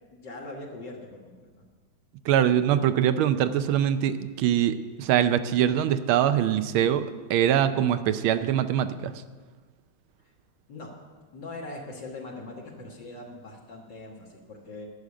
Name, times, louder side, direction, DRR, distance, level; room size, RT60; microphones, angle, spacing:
voice 1, 0.1-1.6 10.2-10.3 10.7-10.9 11.3-14.9, left 2 dB, 60° left, -2 dB, 2.1 m, -41 dB
voice 2, 2.3-9.1, right 10 dB, 80° right, 11 dB, 1.4 m, -23 dB
11.5 x 6.6 x 8.4 m, 1.4 s
omnidirectional pair, 2.3 m